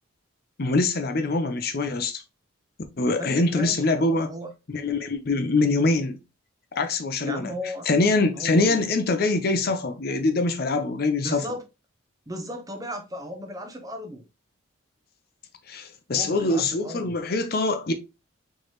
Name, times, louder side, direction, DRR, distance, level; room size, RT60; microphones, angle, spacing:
voice 1, 0.6-2.2 3.0-4.3 4.7-6.2 6.7-7.5 7.9-11.4 15.7-17.9, left 3 dB, 50° left, 0.6 m, -24 dB
voice 2, 3.2-4.5 7.2-7.9 8.3-8.8 11.2-11.6 12.3-14.2 16.1-17.2, equal, 15° right, 0.7 m, -35 dB
4.5 x 3.2 x 3.0 m
head